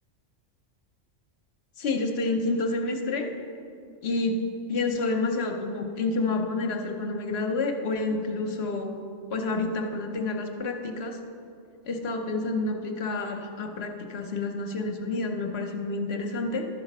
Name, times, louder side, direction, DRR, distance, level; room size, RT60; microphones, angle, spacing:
voice 1, 1.8-3.3 4.0-9.0 9.3-11.2 11.9-16.7, left 3 dB, 60° left, 4 dB, 1.0 m, -29 dB
12.5 x 4.9 x 5.4 m, 2.5 s
omnidirectional pair, 1.3 m